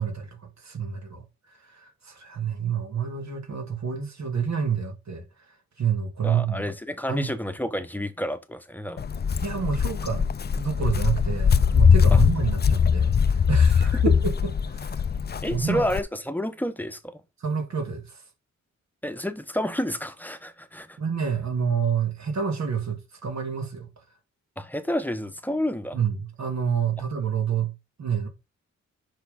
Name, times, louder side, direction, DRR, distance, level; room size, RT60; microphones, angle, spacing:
voice 1, 0.0-6.7 7.1-7.3 9.4-10.2 10.6-14.1 14.7-15.0 15.5-15.8 17.4-18.2 21.0-23.9 25.9-27.7 28.0-28.3, right 6 dB, 65° right, 2.2 m, -28 dB
voice 2, 6.2-9.0 12.1-12.2 15.4-17.2 19.0-21.0 24.6-26.0, left 1 dB, 5° left, 1.0 m, -30 dB
Walk footsteps, 9.0-16.0, left 6 dB, 35° left, 0.5 m, -21 dB
6.5 x 5.9 x 5.3 m
wide cardioid pair, 115°, 30 cm